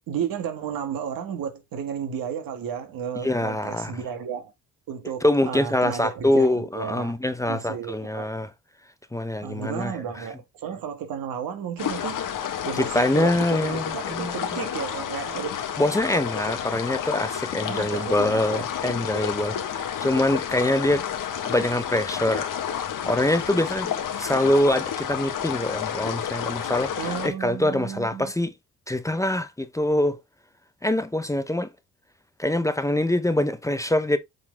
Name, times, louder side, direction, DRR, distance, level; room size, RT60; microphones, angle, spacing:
voice 1, 0.1-4.5 4.9-7.2 7.5-8.3 9.4-12.2 12.6-15.6 16.6-16.8 17.7-18.6 27.0-28.3, right 8 dB, 85° right, 1.9 m, -33 dB
voice 2, 3.2-4.0 5.2-8.5 9.1-10.2 12.8-14.4 15.8-19.8 20.0-21.1 21.4-22.5 23.1-28.5 28.9-30.2 30.8-31.7 32.4-34.2, left 1 dB, 10° left, 0.8 m, -24 dB
sound 1, 11.8-27.3, left 9 dB, 70° left, 1.5 m, -30 dB
7.7 x 4.1 x 3.5 m
cardioid pair, 110°, 34 cm